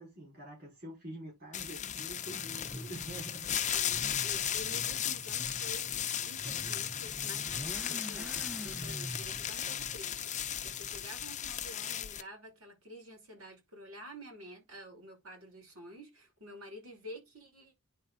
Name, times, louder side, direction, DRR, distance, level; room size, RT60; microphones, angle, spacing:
voice 1, 0.0-3.5, right 1 dB, 45° right, 4.7 m, -46 dB
sound 1, 1.5-12.2, left 10 dB, 35° left, 0.7 m, -36 dB
Motorcycle / Accelerating revving vroom, 2.2-11.1, right 1 dB, 5° right, 0.4 m, -47 dB
voice 2, 3.7-17.7, equal, 70° right, 5.7 m, -50 dB
10.0 x 4.2 x 3.9 m
head